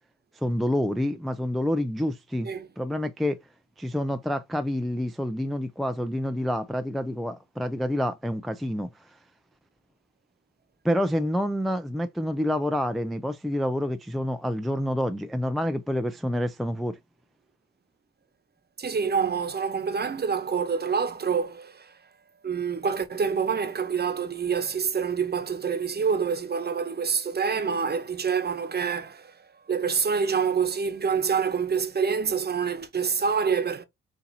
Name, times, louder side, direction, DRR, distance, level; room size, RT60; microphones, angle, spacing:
voice 1, 0.3-2.5 2.8-3.4 3.8-9.2 10.8-17.0, equal, ahead, 0.4 m, -28 dB
voice 2, 18.8-21.9 22.4-29.4 29.7-33.9, right 6 dB, 35° right, 1.0 m, -26 dB
6.4 x 2.8 x 2.8 m
cardioid pair, 90°, 30 cm